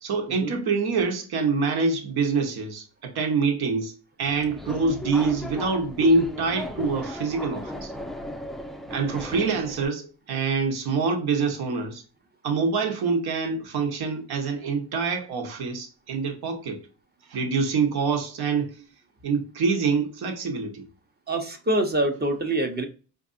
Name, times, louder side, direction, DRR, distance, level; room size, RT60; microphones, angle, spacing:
voice 1, 0.0-3.9 4.2-7.9 8.9-12.0 12.4-16.9 17.3-18.9 19.2-20.9, right 4 dB, 70° right, 1.3 m, -25 dB
Subway metro underground, 4.2-9.9, left 1 dB, ahead, 0.3 m, -36 dB
voice 2, 21.3-22.8, right 1 dB, 25° right, 0.8 m, -25 dB
4.5 x 2.6 x 2.6 m
cardioid pair, 95°, 39 cm